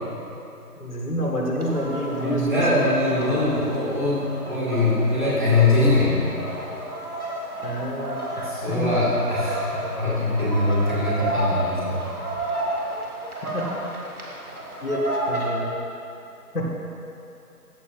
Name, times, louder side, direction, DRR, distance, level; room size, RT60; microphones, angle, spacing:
voice 1, 0.8-2.6 7.6-8.9 13.5-13.6 14.8-15.7 16.5-16.7, equal, 70° left, -3 dB, 2.1 m, -28 dB
sound 1, 1.6-15.5, right 1 dB, 65° right, 1.8 m, -31 dB
voice 2, 2.2-6.4 8.4-12.0, left 2 dB, 30° right, -9 dB, 1.9 m, -22 dB
14.0 x 7.6 x 2.6 m, 2.9 s
figure-of-eight pair, 175°, 47 cm